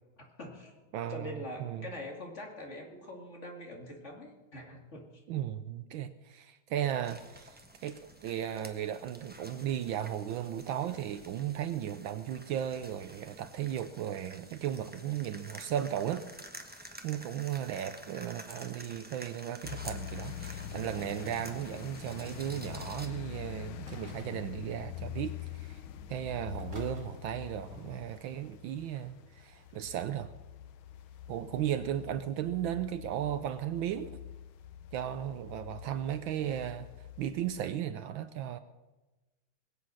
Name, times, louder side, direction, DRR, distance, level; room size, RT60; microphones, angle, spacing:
voice 1, 0.2-0.7 1.1-5.1 15.1-15.2, left 1 dB, 35° left, 2.5 m, -44 dB
voice 2, 0.9-1.9 5.3-16.2 17.0-25.8 26.1-30.3 31.3-34.1 34.9-38.6, right 10 dB, 75° right, 1.3 m, -36 dB
sound 1, 7.0-23.1, right 1 dB, 10° right, 0.6 m, -50 dB
sound 2, 19.6-37.6, left 10 dB, 75° left, 1.6 m, -45 dB
sound 3, 22.7-23.2 23.9-24.5 25.4-25.5 25.7-26.0 26.6-27.1 29.0-29.1, right 1 dB, 35° right, 2.7 m, -54 dB
21.0 x 8.3 x 6.3 m
omnidirectional pair, 2.3 m